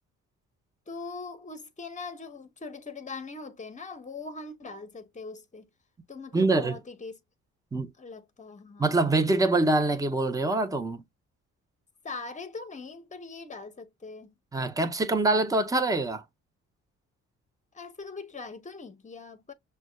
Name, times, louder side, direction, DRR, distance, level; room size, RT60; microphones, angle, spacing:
voice 1, 0.9-5.7 6.1-7.2 8.0-9.0 12.0-14.3 17.7-19.5, left 4 dB, 25° left, 0.9 m, -41 dB
voice 2, 6.3-6.8 7.7-7.9 8.8-11.0 14.5-16.2, right 2 dB, 10° right, 0.7 m, -24 dB
6.0 x 2.2 x 2.2 m
cardioid pair, 90°, 30 cm